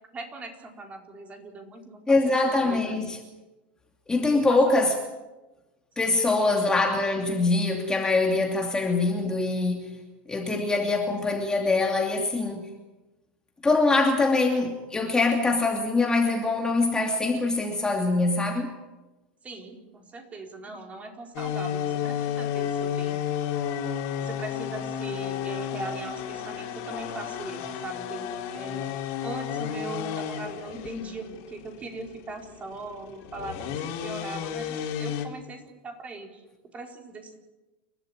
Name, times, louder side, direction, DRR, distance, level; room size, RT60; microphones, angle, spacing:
voice 1, 0.1-3.0 4.3-4.6 6.0-6.2 19.4-23.2 24.2-28.9 29.2-36.4 36.7-37.4, right 3 dB, 20° right, 4.7 m, -40 dB
voice 2, 2.1-3.2 4.1-5.0 6.0-10.0 10.3-12.7 13.6-18.8, left 3 dB, 10° left, 2.7 m, -23 dB
sound 1, 21.3-35.2, left 9 dB, 55° left, 4.2 m, -32 dB
29.0 x 13.0 x 9.2 m
supercardioid pair, 125°, 6 cm